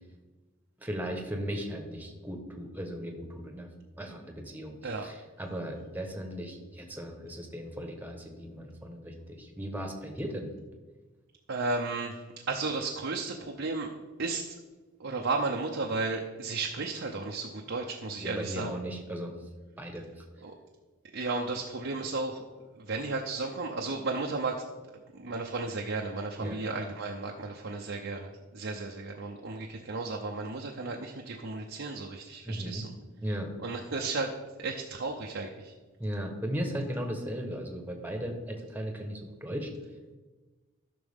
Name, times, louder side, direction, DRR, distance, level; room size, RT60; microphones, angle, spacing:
voice 1, 0.8-3.7 4.0-10.5 18.2-19.3 19.8-20.0 26.4-26.6 32.4-32.9 33.2-33.5 36.0-39.7, equal, 10° right, 3 dB, 1.2 m, -36 dB
voice 2, 11.5-12.2 12.5-13.9 14.2-14.6 15.0-18.7 20.4-20.5 21.1-22.4 22.8-24.6 25.1-32.9 33.6-34.3 34.6-35.7, right 3 dB, 65° right, 0 dB, 0.7 m, -34 dB
13.5 x 6.0 x 3.6 m, 1.2 s
head